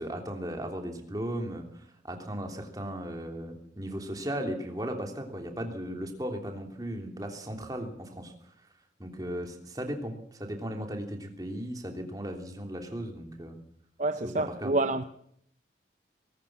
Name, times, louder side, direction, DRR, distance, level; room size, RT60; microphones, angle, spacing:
voice 1, 0.0-8.3 9.0-13.6 14.2-14.7, equal, 20° right, 3.1 m, -36 dB
voice 2, 14.0-15.0, right 2 dB, 45° right, 0.8 m, -28 dB
20.0 x 18.5 x 7.4 m
head